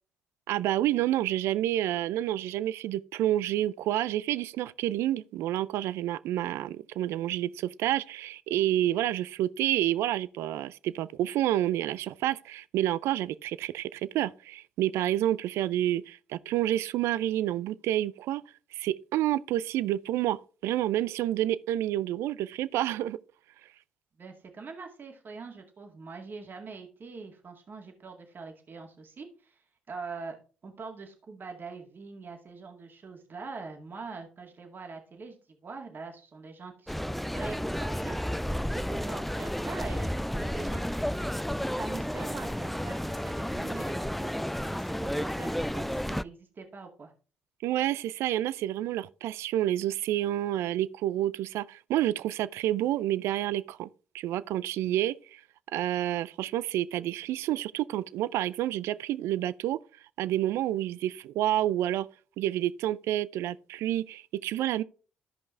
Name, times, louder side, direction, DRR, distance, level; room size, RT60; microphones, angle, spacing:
voice 1, 0.5-18.4 18.7-23.2 47.6-53.9 54.1-55.4 55.7-59.8 60.2-62.1 62.4-64.8, right 13 dB, 70° right, 0.4 m, -29 dB
voice 2, 24.2-29.6 29.9-30.4 30.6-40.8 41.8-47.1, right 4 dB, 45° right, 2.1 m, -43 dB
sound 1, 36.9-46.2, equal, 5° left, 0.3 m, -32 dB
13.5 x 5.3 x 3.3 m
hypercardioid pair, 45°, 5 cm